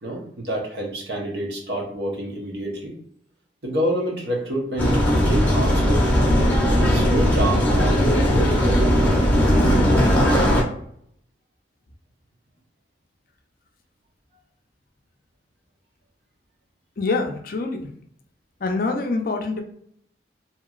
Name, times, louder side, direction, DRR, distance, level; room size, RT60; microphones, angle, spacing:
voice 1, 0.0-2.9 3.6-6.0 6.8-9.2, right 1 dB, 70° right, -1 dB, 0.9 m, -28 dB
sound 1, 4.8-10.6, equal, 10° left, 0.7 m, -18 dB
voice 2, 17.0-17.9 18.6-19.6, left 3 dB, 50° left, 4 dB, 0.4 m, -25 dB
2.8 x 2.8 x 2.4 m, 0.66 s
head